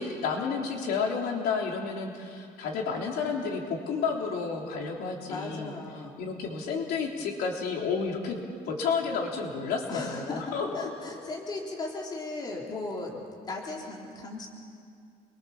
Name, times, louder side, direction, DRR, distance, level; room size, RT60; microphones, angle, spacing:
voice 1, 0.0-5.7 6.2-8.4 8.7-10.9, left 5 dB, 70° left, 0 dB, 3.5 m, -31 dB
voice 2, 5.3-6.2 9.9-14.5, left 2 dB, 25° left, -2 dB, 3.8 m, -37 dB
29.5 x 23.0 x 7.2 m, 2.3 s
cardioid pair, 175°, 17 cm